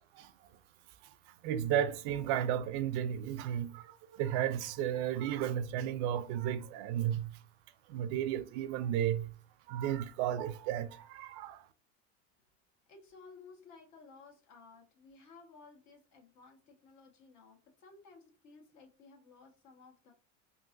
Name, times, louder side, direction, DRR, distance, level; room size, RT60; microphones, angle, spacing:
voice 1, 1.4-7.3 7.9-9.3 9.7-11.6, right 10 dB, 65° right, 0.5 m, -33 dB
voice 2, 12.9-20.1, left 4 dB, 50° left, 1.4 m, -57 dB
3.7 x 2.6 x 2.5 m
supercardioid pair, 130°, 38 cm